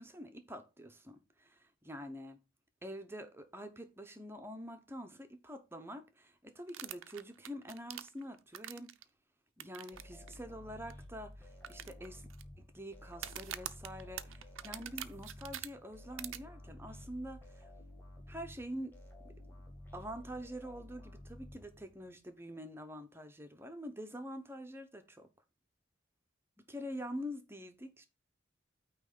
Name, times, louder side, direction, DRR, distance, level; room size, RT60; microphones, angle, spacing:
voice 1, 0.0-2.4 2.8-8.9 9.6-12.3 12.6-17.7 18.3-18.9 19.2-19.3 19.9-25.3 26.7-28.1, equal, 10° right, 0.9 m, -46 dB
sound 1, 6.7-9.0 9.6-10.0 10.3-10.4 10.9-11.0 11.6-12.4 13.1-15.7 16.2-16.4, right 11 dB, 85° right, 0.6 m, -44 dB
sound 2, 9.9-22.1, left 1 dB, 10° left, 2.1 m, -53 dB
9.0 x 3.2 x 6.5 m
head